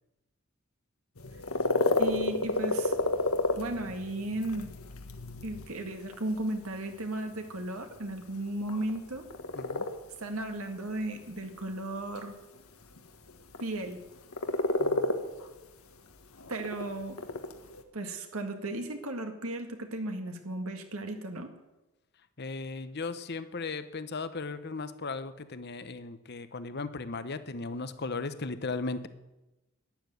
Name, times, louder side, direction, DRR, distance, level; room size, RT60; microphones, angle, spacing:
sound 1, 1.2-17.8, left 2 dB, 70° left, 1.5 m, -32 dB
voice 1, 2.0-3.0 3.6-4.7 5.4-9.3 10.2-12.4 13.6-14.0 16.5-17.2 17.9-21.5, right 1 dB, 75° right, 5 dB, 1.9 m, -35 dB
voice 2, 9.5-9.9 14.8-15.1 22.4-29.1, left 3 dB, 45° left, 12 dB, 0.9 m, -36 dB
12.0 x 10.5 x 9.3 m, 1.0 s
head